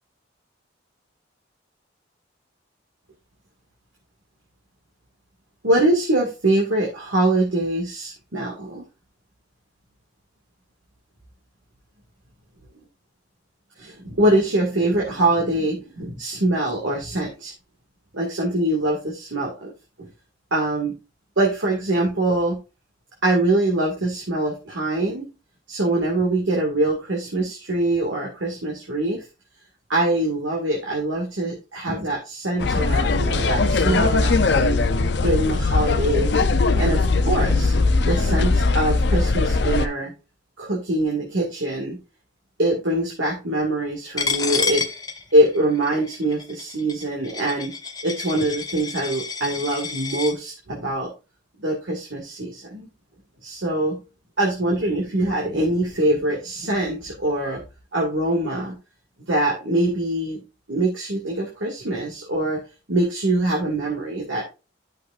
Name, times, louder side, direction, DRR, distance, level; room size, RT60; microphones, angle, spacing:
voice 1, 5.6-8.8 13.8-17.5 18.1-19.7 20.0-20.1 20.5-20.9 21.4-22.6 23.2-25.3 25.7-29.3 29.9-34.8 35.2-36.4 36.8-37.7 38.1-40.1 40.6-42.0 42.6-44.8 45.3-47.7 48.0-51.1 51.6-52.9 53.4-54.0 54.4-57.6 57.9-58.8 59.3-60.4 60.7-62.6 62.9-64.4, right 1 dB, 80° right, -2 dB, 2.1 m, -23 dB
sound 1, 32.6-39.9, left 3 dB, 60° left, 0.6 m, -20 dB
Coin (dropping), 44.2-50.3, left 5 dB, 20° left, 0.8 m, -29 dB
11.0 x 6.4 x 2.5 m, 0.29 s
head